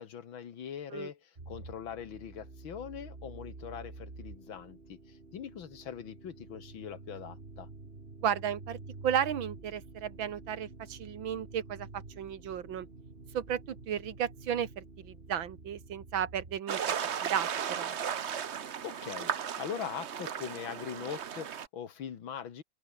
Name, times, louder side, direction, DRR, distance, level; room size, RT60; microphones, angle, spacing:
voice 1, 0.0-7.7 18.8-22.6, left 8 dB, 80° left, 2.4 m, -42 dB
sound 1, 1.4-16.6, right 3 dB, 30° right, 3.1 m, -49 dB
voice 2, 8.2-8.8 9.0-12.9 13.3-16.9 17.2-18.0, right 9 dB, 80° right, 2.1 m, -34 dB
sound 2, 16.7-21.7, right 8 dB, 45° right, 0.9 m, -35 dB
omnidirectional pair, 2.2 m